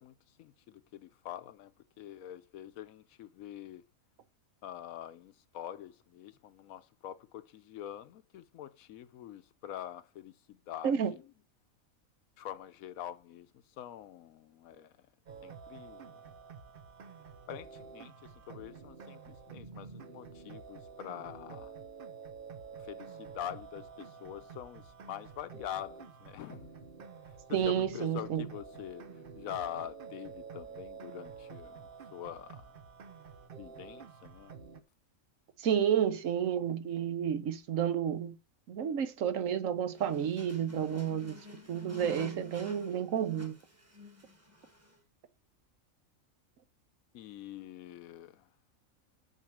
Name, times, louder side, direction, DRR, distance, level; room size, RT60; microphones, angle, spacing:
voice 1, 0.0-1.7 2.0-3.8 4.6-11.2 12.4-13.5 13.8-14.9 15.4-16.1 17.5-21.7 22.8-26.7 27.5-29.1 29.4-31.8 32.1-32.7 33.6-34.5 47.1-48.5, left 11 dB, 80° left, 1.1 m, -45 dB
sound 1, 15.3-34.8, right 5 dB, 45° right, 0.8 m, -49 dB
voice 2, 27.5-28.5 35.6-38.4 38.7-41.3 41.7-43.6, right 9 dB, 70° right, 1.2 m, -31 dB
sound 2, 39.9-45.0, left 1 dB, 10° right, 1.4 m, -50 dB
6.5 x 5.9 x 6.2 m
omnidirectional pair, 1.5 m